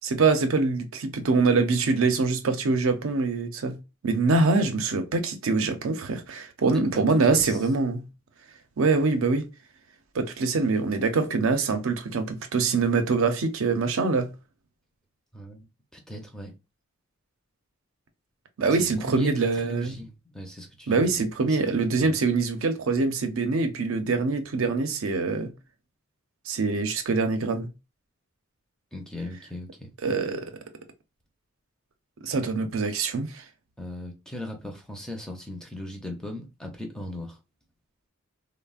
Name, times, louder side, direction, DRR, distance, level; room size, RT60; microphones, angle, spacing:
voice 1, 0.0-3.8 4.0-8.0 8.8-9.5 10.1-14.3 18.6-19.9 20.9-25.5 26.5-27.7 30.0-30.5 32.2-33.4, right 4 dB, 70° right, 0.5 m, -24 dB
voice 2, 7.3-7.6 15.3-15.6 15.9-16.5 18.7-21.6 22.0-22.2 28.9-29.9 33.8-37.4, left 1 dB, 5° left, 0.5 m, -38 dB
3.3 x 2.0 x 2.3 m
head